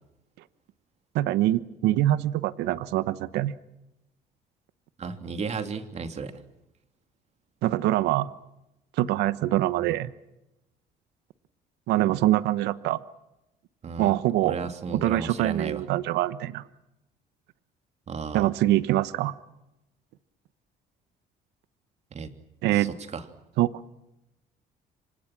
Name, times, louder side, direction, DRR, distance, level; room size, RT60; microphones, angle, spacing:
voice 1, 1.1-3.5 7.6-8.3 9.0-10.1 11.9-13.0 14.0-14.6 14.9-16.6 18.3-19.3 22.6-22.9 23.6-23.7, right 14 dB, 85° right, 15 dB, 1.1 m, -24 dB
voice 2, 5.0-6.3 13.8-14.2 14.4-15.8 18.1-18.5 22.1-22.3 22.7-23.2, right 5 dB, 40° right, 7 dB, 3.1 m, -34 dB
29.0 x 25.5 x 6.2 m, 0.92 s
cardioid pair, 110°, 17 cm